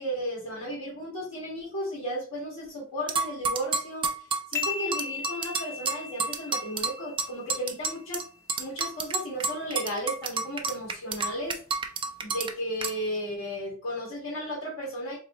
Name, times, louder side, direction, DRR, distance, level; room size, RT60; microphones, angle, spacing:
voice 1, 0.0-8.2 8.6-11.6 12.2-15.2, equal, 75° left, -6 dB, 1.6 m, -34 dB
sound 1, 3.1-8.2 8.5-12.5 12.8-12.9, right 4 dB, 25° right, 0.4 m, -30 dB
sound 2, 4.5-8.1, left 5 dB, 15° left, 0.6 m, -37 dB
3.0 x 2.4 x 4.0 m, 0.41 s
head